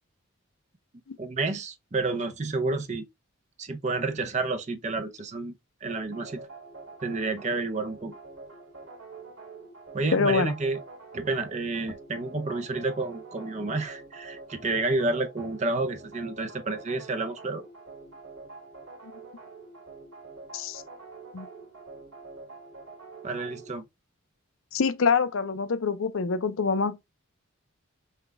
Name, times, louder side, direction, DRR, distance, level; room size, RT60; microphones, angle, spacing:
voice 1, 1.2-3.0 3.6-5.5 5.8-6.4 7.0-8.1 9.9-10.8 11.1-17.6 23.2-23.8, right 3 dB, 30° right, 0.5 m, -30 dB
sound 1, 5.9-23.8, right 4 dB, 90° right, 2.9 m, -46 dB
voice 2, 10.1-10.5 20.5-20.8 21.3-21.5 24.7-27.0, left 5 dB, 70° left, 0.5 m, -25 dB
5.6 x 2.3 x 3.2 m
head